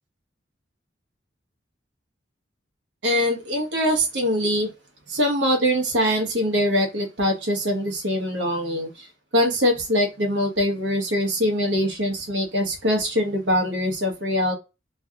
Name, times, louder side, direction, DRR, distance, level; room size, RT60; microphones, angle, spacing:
voice 1, 3.0-4.7 5.1-9.1 9.3-14.5, equal, 65° right, 2 dB, 1.2 m, -23 dB
3.0 x 2.9 x 2.4 m, 0.25 s
head